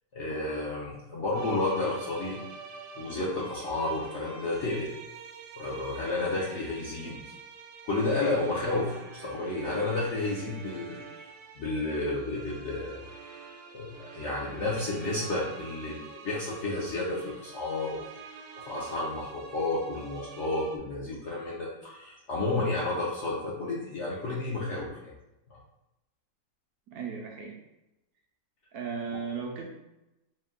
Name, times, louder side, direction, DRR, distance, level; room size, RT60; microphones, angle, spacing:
voice 1, 0.1-2.4 3.0-4.9 5.6-7.2 7.8-11.3 11.6-13.0 13.7-18.0 18.7-25.1 25.5-25.6, left 2 dB, 60° left, -5 dB, 0.8 m, -31 dB
sound 1, 1.3-20.8, right 5 dB, 85° right, 0.6 m, -46 dB
voice 2, 26.9-27.6 28.7-29.7, right 6 dB, 70° right, 1 dB, 0.9 m, -36 dB
4.2 x 2.2 x 3.6 m, 0.94 s
omnidirectional pair, 1.8 m